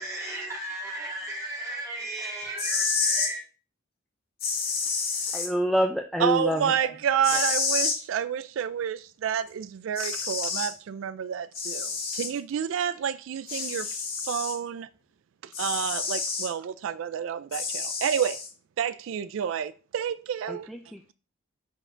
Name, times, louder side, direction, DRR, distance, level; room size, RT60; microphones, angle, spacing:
voice 1, 0.0-3.4, right 1 dB, 15° right, 2.5 m, -35 dB
sound 1, 2.4-3.3 4.4-5.5 7.2-8.0 9.5-9.6 10.0-10.7 11.5-12.3 13.5-14.6 15.5-16.5 17.5-18.5, left 4 dB, 50° left, 1.8 m, -29 dB
voice 2, 5.3-6.7 7.3-7.4 20.5-21.1, equal, ahead, 0.4 m, -27 dB
voice 3, 6.2-14.0 14.2-14.9 15.6-18.4 18.8-20.7, right 8 dB, 80° right, 0.3 m, -29 dB
10.0 x 3.7 x 3.3 m
head